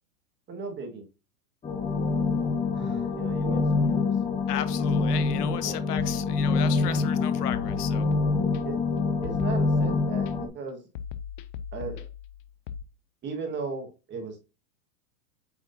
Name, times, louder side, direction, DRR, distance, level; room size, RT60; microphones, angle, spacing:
voice 1, 0.5-1.1 2.7-4.4 5.6-5.7 8.6-8.8 9.2-10.8 11.7-12.0 13.2-14.4, right 4 dB, 20° right, 1.6 m, -37 dB
sound 1, 1.6-10.5, left 4 dB, 15° left, 1.0 m, -26 dB
voice 2, 4.5-8.1, left 12 dB, 70° left, 1.0 m, -35 dB
sound 2, 6.0-6.9 7.5-8.9 9.2-10.3 11.0-12.8, left 8 dB, 35° left, 0.4 m, -39 dB
8.2 x 4.8 x 2.7 m
hypercardioid pair, 140°, 48 cm